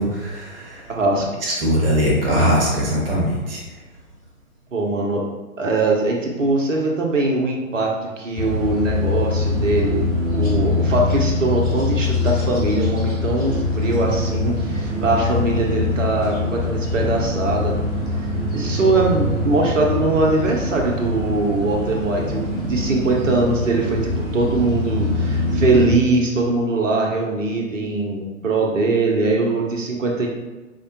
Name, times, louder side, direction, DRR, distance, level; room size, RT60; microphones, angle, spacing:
voice 1, 0.0-0.8 1.5-3.6, equal, 40° right, -3 dB, 1.1 m, -20 dB
voice 2, 0.9-1.3 4.7-5.2 5.6-17.7 18.5-30.3, right 2 dB, 65° right, 0 dB, 0.9 m, -21 dB
sound 1, 8.3-25.9, left 2 dB, 10° right, 1.0 m, -23 dB
4.8 x 2.2 x 2.8 m, 1.2 s
figure-of-eight pair, 125°, 42 cm